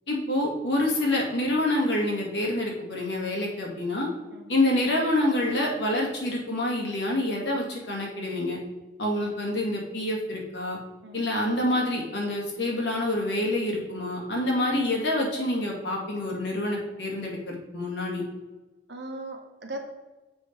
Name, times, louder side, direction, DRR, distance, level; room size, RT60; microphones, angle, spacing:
voice 1, 0.1-4.1 4.5-8.6 9.0-10.8 11.1-18.2, left 1 dB, 80° left, -1 dB, 2.1 m, -27 dB
voice 2, 18.9-19.8, right 2 dB, 70° right, 3 dB, 1.3 m, -38 dB
6.9 x 5.2 x 4.5 m, 1.2 s
head